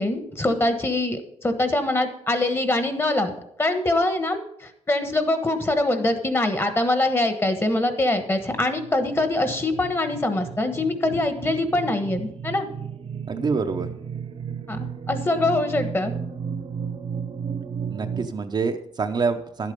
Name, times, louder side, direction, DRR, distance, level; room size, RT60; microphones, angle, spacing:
voice 1, 0.0-3.3 3.6-12.7 14.7-16.1, left 2 dB, 20° left, 8 dB, 1.2 m, -23 dB
sound 1, 8.5-18.3, right 7 dB, 55° right, 1.0 m, -34 dB
voice 2, 13.3-13.9 17.9-19.7, right 4 dB, 40° right, 6 dB, 0.7 m, -26 dB
11.0 x 8.3 x 5.2 m, 0.75 s
cardioid pair, 120°, 12 cm